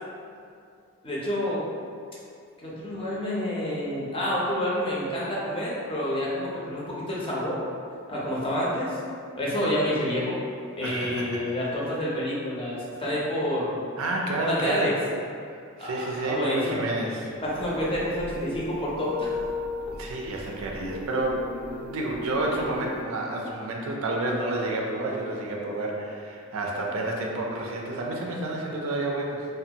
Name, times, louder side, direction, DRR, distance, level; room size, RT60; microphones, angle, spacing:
voice 1, 1.0-1.6 2.6-7.6 8.1-9.0 9.4-10.4 10.8-13.9 14.4-14.9 15.8-16.8 17.4-19.3, equal, 25° left, -6 dB, 0.5 m, -28 dB
voice 2, 10.8-11.5 14.0-14.9 15.5-17.3 19.9-21.4 21.8-29.5, right 2 dB, 75° right, -1 dB, 0.4 m, -30 dB
sound 1, 17.5-23.0, left 3 dB, 85° left, 0.4 m, -36 dB
2.5 x 2.3 x 2.7 m, 2.4 s
head